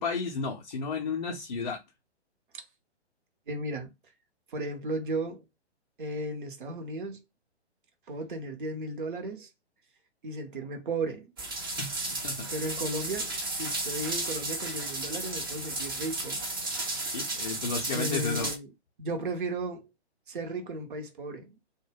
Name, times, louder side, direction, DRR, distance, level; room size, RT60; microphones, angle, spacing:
voice 1, 0.0-1.8 11.8-12.5 17.1-18.5, left 4 dB, 40° left, 0.4 m, -33 dB
voice 2, 3.5-3.9 4.5-5.4 6.0-7.2 8.1-9.5 10.2-11.3 12.5-16.4 17.9-18.7 19.0-19.9 20.3-21.5, right 2 dB, 50° right, 0.7 m, -35 dB
sound 1, 11.4-18.6, right 2 dB, 20° right, 0.4 m, -33 dB
2.2 x 2.1 x 3.2 m
figure-of-eight pair, 125°, 34 cm